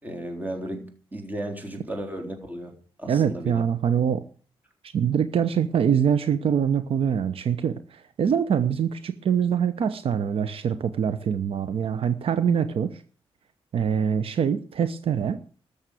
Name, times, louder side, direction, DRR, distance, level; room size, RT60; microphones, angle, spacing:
voice 1, 0.0-2.7 3.0-3.6, right 1 dB, 15° right, 3 dB, 3.8 m, -34 dB
voice 2, 3.1-4.2 4.8-13.0 13.7-15.4, right 8 dB, 70° right, 12 dB, 0.9 m, -24 dB
13.0 x 7.3 x 9.2 m, 0.41 s
cardioid pair, 110°, 10 cm